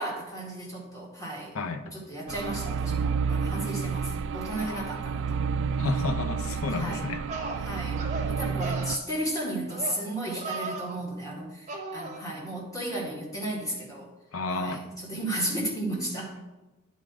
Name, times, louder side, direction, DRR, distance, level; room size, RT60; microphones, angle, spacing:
voice 1, 0.0-1.5 1.9-5.4 6.7-7.1 7.6-14.1 14.5-16.3, right 1 dB, 15° left, -3 dB, 1.9 m, -34 dB
sound 1, 2.3-9.0, right 5 dB, 60° right, 0.3 m, -30 dB
voice 2, 4.5-4.9 5.8-7.2 14.3-14.8, left 3 dB, 90° left, 7 dB, 0.7 m, -31 dB
sound 2, 6.8-6.9 7.3-7.6 8.0-8.3 8.6-9.0 9.7-10.0 10.3-10.9 11.7-12.2, right 3 dB, 35° right, 1.0 m, -36 dB
10.5 x 3.7 x 4.8 m, 1.1 s
head